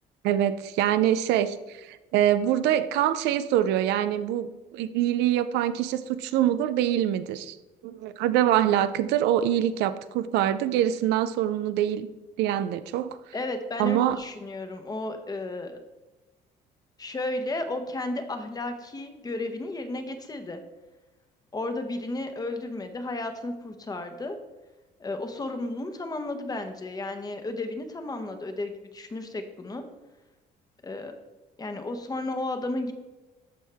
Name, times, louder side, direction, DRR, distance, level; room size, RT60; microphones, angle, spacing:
voice 1, 0.2-7.6 7.8-12.1 12.4-13.2 13.8-14.2, right 11 dB, 85° right, 13 dB, 0.5 m, -24 dB
voice 2, 13.3-15.8 17.0-20.6 21.5-24.4 25.0-29.8 30.8-31.1 31.6-32.9, left 2 dB, 20° left, 7 dB, 1.1 m, -33 dB
13.5 x 4.6 x 3.5 m, 1.1 s
cardioid pair, 110°, 17 cm